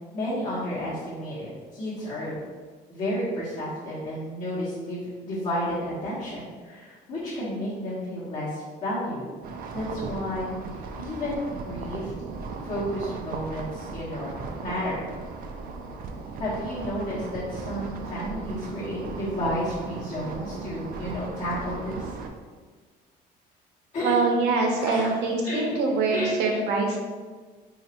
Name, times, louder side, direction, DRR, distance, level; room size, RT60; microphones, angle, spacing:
voice 1, 0.1-2.4 2.9-9.2 9.7-10.5 11.0-12.1 12.6-15.1 16.4-22.1 23.9-24.2 24.8-25.1 25.4-26.6, equal, 45° left, -10 dB, 1.3 m, -31 dB
sound 1, 9.4-22.3, right 4 dB, 60° right, 0.4 m, -37 dB
voice 2, 24.0-27.0, right 3 dB, 85° right, 1 dB, 0.7 m, -24 dB
4.0 x 2.8 x 2.9 m, 1.5 s
cardioid pair, 110°, 17 cm